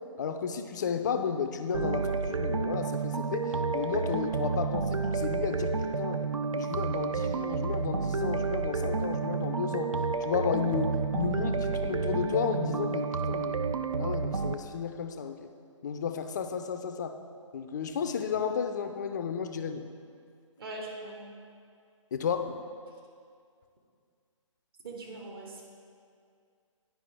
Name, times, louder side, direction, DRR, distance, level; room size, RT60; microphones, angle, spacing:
voice 1, 0.2-6.2 6.6-9.9 10.2-13.6 14.0-15.5 15.8-17.2 17.5-19.8 22.1-22.6, left 6 dB, 35° left, 7 dB, 0.4 m, -33 dB
sound 1, 1.7-14.6, right 4 dB, 85° right, 0.4 m, -30 dB
voice 2, 20.6-21.3 24.8-25.6, right 2 dB, 45° right, -1 dB, 1.2 m, -41 dB
10.0 x 4.8 x 3.3 m, 2.2 s
figure-of-eight pair, 140°, 17 cm